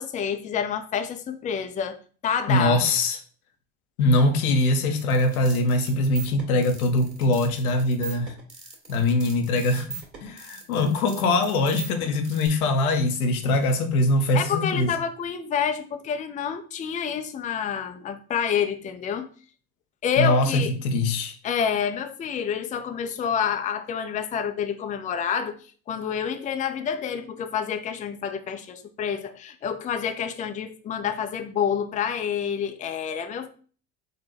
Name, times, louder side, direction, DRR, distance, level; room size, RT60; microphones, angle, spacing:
voice 1, 0.0-2.0 2.2-2.8 14.3-19.3 20.0-20.7 21.4-25.6 25.9-33.5, left 7 dB, 20° left, 0.4 m, -28 dB
voice 2, 2.5-3.2 4.0-8.3 8.9-9.9 10.2-14.9 20.2-21.4, left 2 dB, 85° left, 0.7 m, -22 dB
sound 1, 5.0-12.5, right 5 dB, 25° right, 1.9 m, -41 dB
3.9 x 2.2 x 4.1 m
hypercardioid pair, 65°, 43 cm